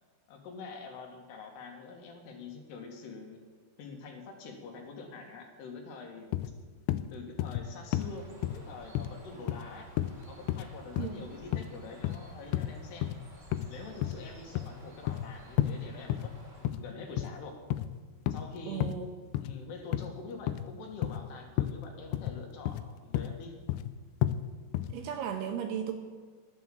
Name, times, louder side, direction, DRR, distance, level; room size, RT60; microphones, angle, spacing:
voice 1, 0.3-3.4 3.8-6.3 7.1-9.9 10.3-13.1 13.7-17.6 18.3-19.0 19.4-23.6, left 4 dB, 70° left, 3 dB, 3.5 m, -45 dB
sound 1, 6.3-6.5 6.9-7.0 7.4-7.7 7.9-8.1 8.4-8.6 9.0-9.1 9.5-9.7 10.0-10.1 10.5-10.7 11.0-11.1 11.5-11.7 12.0-12.2 12.5-12.7 13.0-13.2 13.5-13.7 14.0-14.2 14.6-15.3 15.6-15.7 16.1-16.3 16.7-16.8 17.2-17.4 17.7-17.9 18.3-18.5 18.8-18.9 19.3-19.6 19.9-20.1 20.5-20.7 21.0-21.2 21.6-21.8 22.1-22.4 22.7-22.9 23.1-23.3 23.7-23.9 24.2-24.4 24.7-25.0, left 13 dB, 85° left, 2.9 m, -31 dB
Bird, 7.9-16.7, right 2 dB, 25° right, 3.6 m, -54 dB
voice 2, 18.7-19.1 24.9-25.9, right 8 dB, 75° right, 5 dB, 2.7 m, -35 dB
12.0 x 9.7 x 7.5 m, 1.5 s
omnidirectional pair, 5.1 m